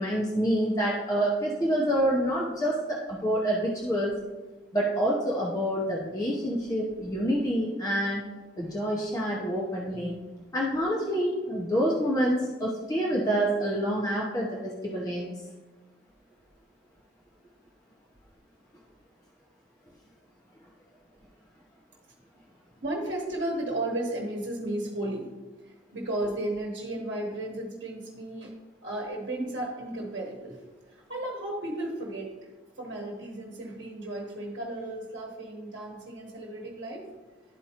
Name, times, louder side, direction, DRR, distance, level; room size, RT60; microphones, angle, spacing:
voice 1, 0.0-4.1 4.7-8.2 8.6-10.2 10.5-15.3, equal, 20° left, -4 dB, 0.7 m, -27 dB
voice 2, 22.8-25.3 25.9-28.5 28.8-30.6 30.9-32.3 32.8-37.1, right 1 dB, 70° right, -1 dB, 1.0 m, -34 dB
11.5 x 4.5 x 2.8 m, 1.2 s
head